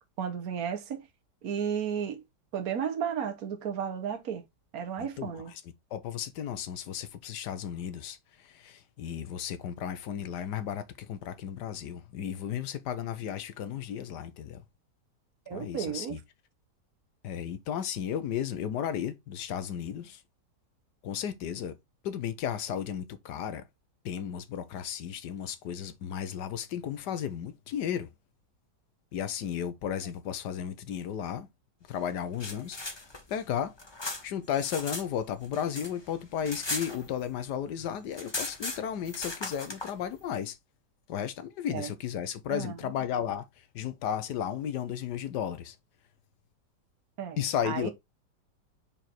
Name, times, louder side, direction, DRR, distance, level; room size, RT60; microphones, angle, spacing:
voice 1, 0.2-1.0 1.4-2.2 2.5-4.4 4.7-5.5 15.5-16.2 41.7-41.9 42.5-42.7 47.2-47.4 47.6-47.9, right 8 dB, 60° right, 1.6 m, -33 dB
voice 2, 5.0-5.6 5.9-14.6 15.5-16.2 17.2-20.2 21.0-21.7 22.0-23.6 24.0-28.1 29.1-31.5 31.9-32.8 33.3-33.7 34.2-40.6 41.1-43.5 43.7-45.7 47.4-47.9, left 9 dB, 75° left, 1.5 m, -34 dB
sound 1, 32.1-35.1 35.4-37.5 37.8-37.9 38.1-39.9, left 2 dB, 15° left, 1.0 m, -37 dB
5.3 x 4.6 x 4.4 m
omnidirectional pair, 1.8 m